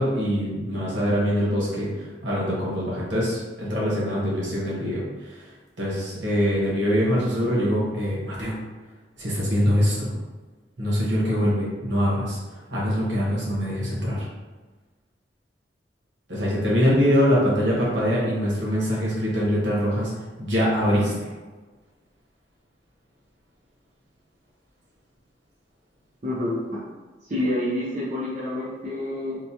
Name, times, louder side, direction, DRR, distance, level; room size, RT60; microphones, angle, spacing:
voice 1, 0.0-5.5 5.8-8.5 9.2-10.1 10.8-12.4 12.7-14.3 16.3-20.1 20.4-21.3, equal, 80° right, -6 dB, 1.0 m, -23 dB
voice 2, 26.2-26.8 27.2-29.4, left 1 dB, 40° right, -7 dB, 0.5 m, -28 dB
2.9 x 2.1 x 2.6 m, 1.3 s
head